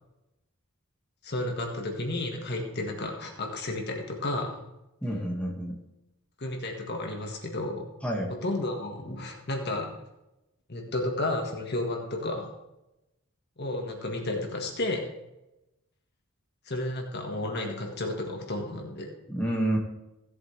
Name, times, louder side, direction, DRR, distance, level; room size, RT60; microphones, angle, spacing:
voice 1, 1.2-4.6 6.4-7.8 8.4-9.9 10.7-12.5 13.6-15.1 16.7-19.1, left 2 dB, 55° left, 2 dB, 1.7 m, -32 dB
voice 2, 5.0-5.8 8.0-8.3 19.3-19.8, right 1 dB, 5° left, -2 dB, 1.9 m, -29 dB
16.5 x 7.8 x 3.4 m, 0.94 s
head